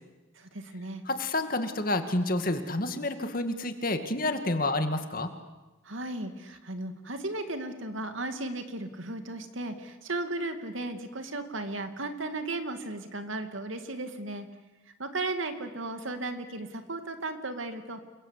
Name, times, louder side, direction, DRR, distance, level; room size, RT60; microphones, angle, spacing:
voice 1, 0.4-1.0 5.8-14.5 15.0-18.0, right 2 dB, 75° right, 7 dB, 2.6 m, -35 dB
voice 2, 1.1-5.3, left 2 dB, 45° left, 8 dB, 2.2 m, -29 dB
29.0 x 22.5 x 8.4 m, 1.1 s
head